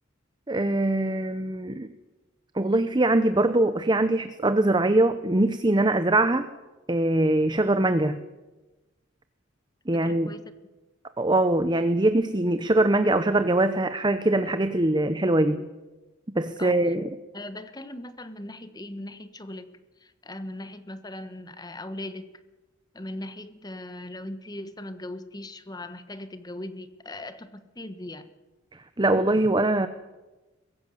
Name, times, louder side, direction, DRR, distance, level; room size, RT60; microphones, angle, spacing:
voice 1, 0.5-1.9 2.6-6.5 6.9-8.2 9.9-10.3 11.2-15.7 16.3-17.1 29.0-29.9, right 2 dB, 20° right, 10 dB, 0.8 m, -22 dB
voice 2, 9.9-10.4 16.6-16.8 17.3-19.7 20.0-22.3 22.9-28.3, left 1 dB, 20° left, 11 dB, 1.3 m, -39 dB
23.0 x 16.0 x 7.8 m, 1.1 s
head